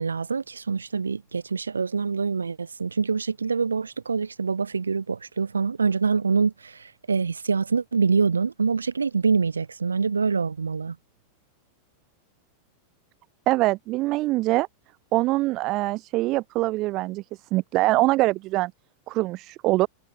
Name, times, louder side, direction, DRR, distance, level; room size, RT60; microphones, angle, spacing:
voice 1, 0.0-11.0, right 5 dB, 75° right, 2.0 m, -25 dB
voice 2, 13.5-14.7 15.1-18.7 19.1-19.9, right 19 dB, 40° right, 1.0 m, -23 dB
figure-of-eight pair, 90°, 0 cm